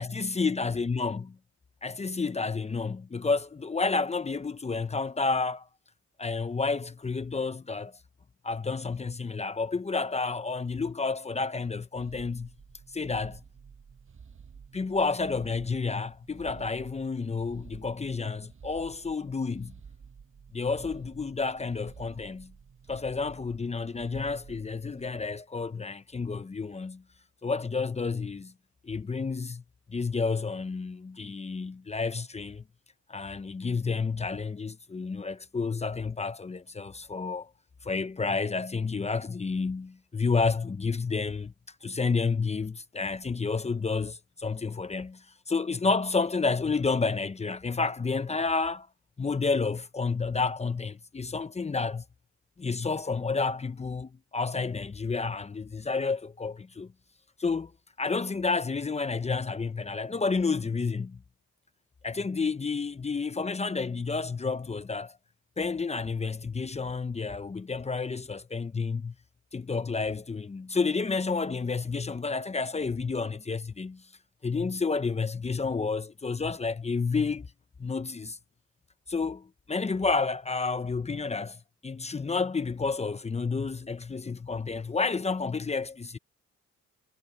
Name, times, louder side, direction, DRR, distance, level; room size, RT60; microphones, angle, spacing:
voice 1, 0.0-1.3 1.8-5.7 6.2-8.0 8.4-12.5 12.9-13.4 14.7-19.7 20.5-22.5 22.9-27.0 27.4-28.5 28.8-29.6 29.9-32.6 33.1-37.5 37.8-41.5 41.8-48.9 49.2-52.0 52.6-56.9 57.4-57.7 58.0-61.2 62.0-65.2 65.6-69.1 69.5-74.0 74.4-77.5 77.8-78.4 79.1-86.2, left 4 dB, 20° left, 0.8 m, -30 dB
sound 1, 11.9-25.1, right 6 dB, 45° right, 7.8 m, -51 dB
cardioid pair, 90°, 30 cm